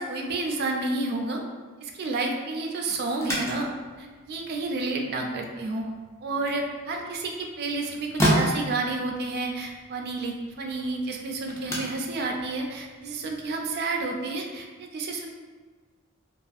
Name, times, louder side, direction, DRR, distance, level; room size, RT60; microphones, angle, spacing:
voice 1, 0.0-1.4 1.8-5.9 6.2-15.3, right 3 dB, 50° right, 2 dB, 0.3 m, -30 dB
briefcase locks, 3.1-13.6, equal, 15° left, 0.4 m, -33 dB
2.4 x 2.3 x 2.5 m, 1.4 s
head